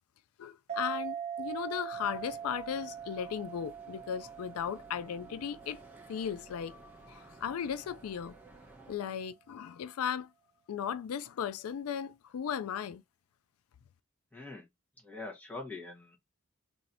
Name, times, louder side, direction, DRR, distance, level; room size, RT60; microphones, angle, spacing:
voice 1, 0.4-5.8 6.1-6.8 7.1-8.3 8.9-10.3 10.7-13.0, left 8 dB, 90° left, 0.3 m, -36 dB
sound 1, 0.7-7.7, right 8 dB, 30° right, 0.3 m, -43 dB
sound 2, 1.9-9.0, right 1 dB, 10° right, 0.9 m, -56 dB
voice 2, 14.3-14.7 15.0-16.2, left 3 dB, 10° left, 1.4 m, -43 dB
3.1 x 2.7 x 4.1 m
head